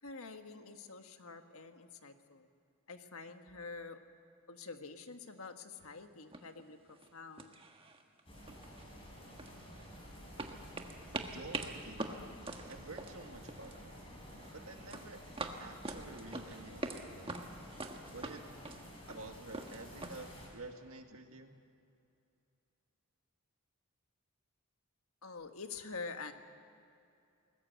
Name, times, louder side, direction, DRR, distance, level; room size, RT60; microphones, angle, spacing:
voice 1, 0.0-2.5 2.9-4.0 4.5-7.5 25.2-26.3, left 4 dB, 75° left, 7 dB, 1.5 m, -47 dB
sound 1, 5.8-5.9 6.3-6.6 6.9-7.1 7.4-8.2 8.5-10.0 10.4-13.9 14.1-14.5 14.9-17.0 17.3-20.1, right 2 dB, 25° right, 1.5 m, -43 dB
sound 2, 8.3-20.5, equal, 25° left, 5.3 m, -52 dB
voice 2, 11.3-12.3 12.7-14.0 14.5-15.2 15.6-17.3 18.1-18.4 19.1-21.5, right 3 dB, 75° right, 5 dB, 1.9 m, -50 dB
22.0 x 19.5 x 8.2 m, 2.7 s
head